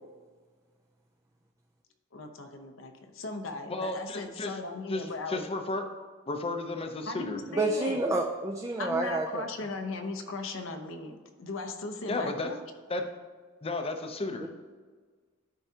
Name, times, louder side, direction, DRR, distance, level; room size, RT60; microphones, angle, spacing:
voice 1, 2.1-5.4 7.1-8.0 8.8-12.6, left 3 dB, 70° left, 5 dB, 0.8 m, -38 dB
voice 2, 3.7-4.5 4.9-5.8 6.3-7.4 12.1-12.5 12.9-13.0 13.6-14.5, left 2 dB, 30° left, 5 dB, 0.6 m, -33 dB
voice 3, 7.4-9.4 14.4-14.5, right 2 dB, 15° right, 1 dB, 0.4 m, -29 dB
12.0 x 4.7 x 2.8 m, 1.5 s
head